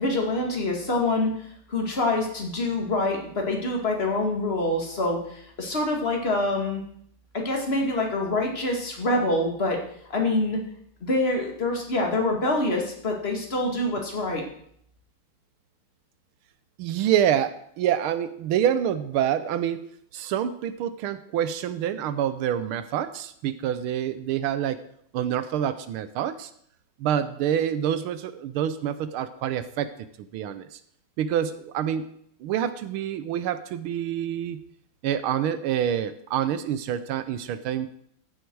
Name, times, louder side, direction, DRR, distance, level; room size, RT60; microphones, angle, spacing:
voice 1, 0.0-1.3 1.7-6.8 7.3-9.8 10.1-10.6 11.0-14.4, left 2 dB, 30° left, 1 dB, 2.3 m, -25 dB
voice 2, 16.8-19.8 20.1-24.8 25.1-26.5 27.0-30.8 31.2-32.1 32.4-34.6 35.0-37.9, right 10 dB, 85° right, 13 dB, 1.6 m, -27 dB
14.0 x 8.1 x 4.7 m, 0.67 s
omnidirectional pair, 2.3 m